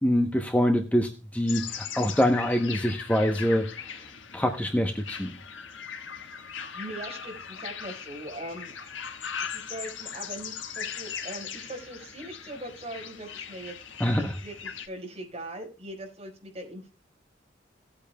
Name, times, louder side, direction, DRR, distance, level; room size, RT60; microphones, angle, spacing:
voice 1, 0.0-3.7 4.3-5.3 14.0-14.3, equal, 10° left, 4 dB, 0.8 m, -25 dB
sound 1, 1.5-14.9, left 7 dB, 85° left, 1.4 m, -39 dB
voice 2, 6.1-8.7 9.4-13.7 14.2-16.9, right 1 dB, 35° right, 0 dB, 4.4 m, -41 dB
17.5 x 8.7 x 2.2 m, 0.34 s
head